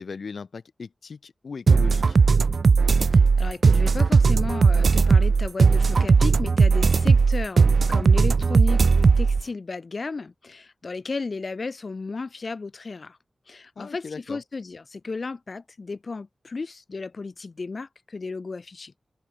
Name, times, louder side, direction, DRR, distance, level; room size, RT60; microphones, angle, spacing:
voice 1, 0.0-2.2 13.8-14.4, left 5 dB, 70° left, 4.3 m, -38 dB
sound 1, 1.7-9.4, right 4 dB, 65° right, 1.0 m, -18 dB
voice 2, 3.1-13.2 13.5-18.9, left 4 dB, 50° left, 1.9 m, -34 dB
open air
wide cardioid pair, 115°, 0 cm